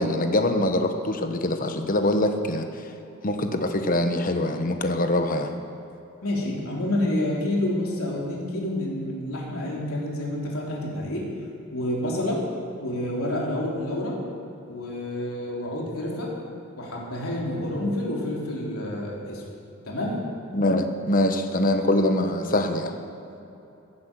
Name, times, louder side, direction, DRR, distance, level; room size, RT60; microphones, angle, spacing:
voice 1, 0.0-2.6 3.2-5.5 20.5-22.9, left 1 dB, 40° left, 6 dB, 1.1 m, -23 dB
voice 2, 6.2-11.2 11.7-12.4 12.8-14.2 14.7-16.3 16.8-19.4 19.8-20.2, left 1 dB, 90° left, -3 dB, 3.4 m, -28 dB
15.5 x 8.6 x 7.5 m, 2.9 s
head